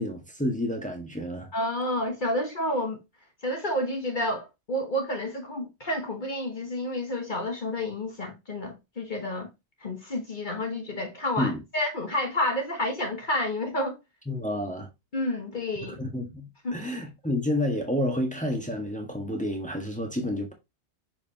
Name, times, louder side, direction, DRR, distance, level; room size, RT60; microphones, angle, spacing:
voice 1, 0.0-1.5 11.4-11.6 14.3-14.9 15.9-20.5, left 1 dB, 5° left, 1.5 m, -30 dB
voice 2, 1.5-3.0 3.4-9.5 9.8-14.0 15.1-16.0 16.6-16.7, left 1 dB, 45° left, 1.4 m, -30 dB
6.9 x 4.8 x 2.9 m
omnidirectional pair, 1.1 m